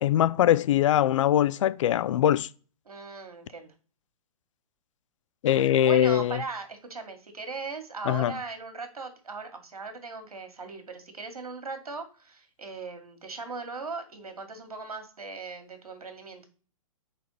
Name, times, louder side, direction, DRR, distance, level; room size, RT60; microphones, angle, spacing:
voice 1, 0.0-2.5 5.4-6.4 8.1-8.3, left 11 dB, 60° left, 0.4 m, -22 dB
voice 2, 2.9-3.7 5.8-16.5, right 4 dB, 85° right, 1.9 m, -39 dB
4.7 x 4.2 x 5.6 m
hypercardioid pair, 130°, 19 cm